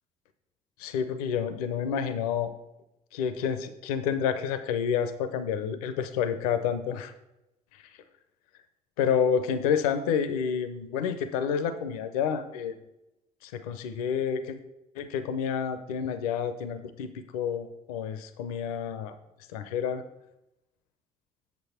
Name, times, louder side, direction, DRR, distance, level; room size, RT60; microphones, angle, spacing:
voice 1, 0.8-2.5 3.1-7.1 7.7-7.8 9.0-12.8 13.4-14.6 15.0-19.2 19.5-20.0, left 7 dB, 80° left, 11 dB, 0.6 m, -29 dB
8.2 x 6.4 x 4.2 m, 0.92 s
hypercardioid pair, 55°, 19 cm